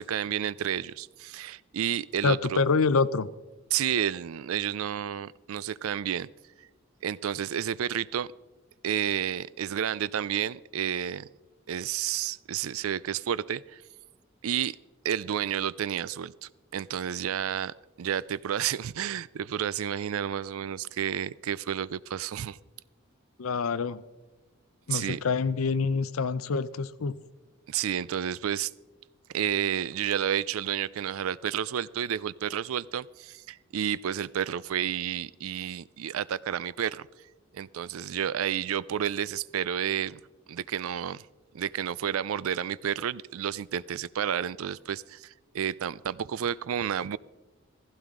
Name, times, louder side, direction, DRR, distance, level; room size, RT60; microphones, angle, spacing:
voice 1, 0.0-2.6 3.7-6.3 6.6-6.7 7.0-8.3 8.8-11.3 11.7-13.8 14.4-14.8 15.0-22.6 24.9-25.2 27.7-28.7 29.3-37.1 37.5-40.2 40.5-41.2 41.5-47.2, right 9 dB, 80° right, 0.4 m, -31 dB
voice 2, 2.2-3.3 23.4-24.0 24.9-27.2, left 4 dB, 80° left, 0.6 m, -26 dB
16.0 x 15.0 x 3.7 m
head